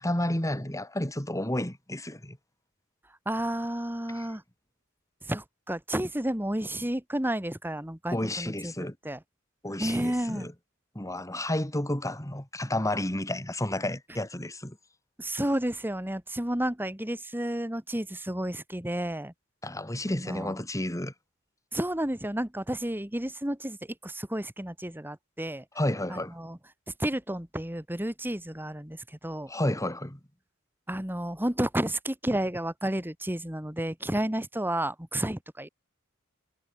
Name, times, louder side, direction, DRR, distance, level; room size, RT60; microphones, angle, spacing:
voice 1, 0.0-2.4 4.2-4.3 8.1-9.0 9.6-10.5 11.0-14.8 19.6-21.1 25.8-26.3 29.5-30.2, left 1 dB, 15° left, 3.7 m, -31 dB
voice 2, 3.3-4.4 5.3-8.7 9.0-9.2 9.8-10.5 15.2-19.3 20.1-20.6 21.7-23.8 24.0-25.6 26.1-26.6 27.0-29.5 30.9-35.7, right 1 dB, 10° right, 2.2 m, -31 dB
head